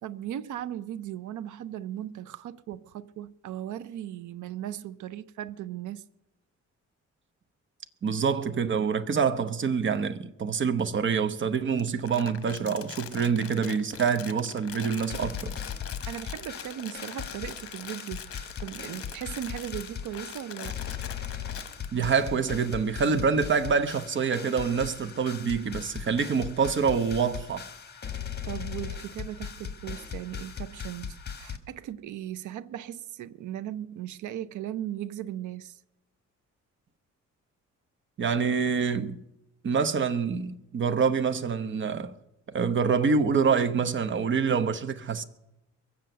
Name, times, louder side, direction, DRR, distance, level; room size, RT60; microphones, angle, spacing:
voice 1, 0.0-6.0 16.1-20.8 28.1-35.7, right 11 dB, 90° right, 0.6 m, -37 dB
voice 2, 8.0-15.6 21.9-27.7 38.2-39.2 39.6-42.1 42.5-45.2, right 6 dB, 40° right, 0.9 m, -26 dB
Crumpling crinkling, 11.8-21.9, left 8 dB, 50° left, 1.0 m, -43 dB
sound 1, 14.7-31.6, left 7 dB, 35° left, 1.5 m, -39 dB
22.5 x 7.7 x 6.7 m
cardioid pair, 140°, 29 cm